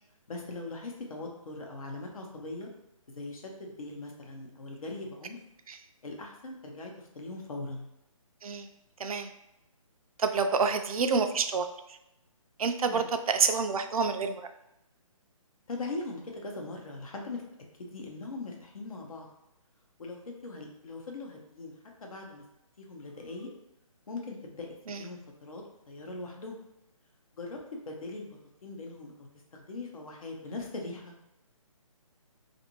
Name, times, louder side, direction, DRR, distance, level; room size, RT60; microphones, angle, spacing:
voice 1, 0.3-2.7 3.1-5.4 6.0-7.9 12.9-13.1 15.7-17.4 17.8-19.3 20.0-21.7 22.0-22.4 22.8-23.5 24.1-26.6 27.3-27.6 27.8-31.1, left 2 dB, 75° left, 1 dB, 0.8 m, -40 dB
voice 2, 9.0-9.3 10.2-11.7 12.6-14.4 24.9-25.0, right 5 dB, 85° right, 7 dB, 0.4 m, -28 dB
2.6 x 2.5 x 2.9 m, 0.89 s
hypercardioid pair, 165°, 18 cm